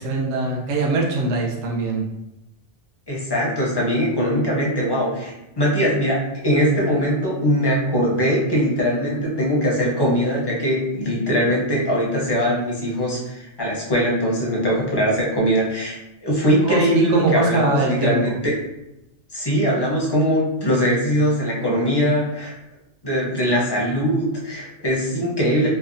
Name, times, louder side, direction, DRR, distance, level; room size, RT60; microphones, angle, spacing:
voice 1, 0.0-2.0 16.7-18.4, right 3 dB, 85° right, -1 dB, 1.0 m, -22 dB
voice 2, 3.1-18.5 19.3-22.5 23.0-25.7, equal, 30° left, -5 dB, 0.5 m, -21 dB
3.2 x 2.1 x 2.5 m, 0.92 s
omnidirectional pair, 1.2 m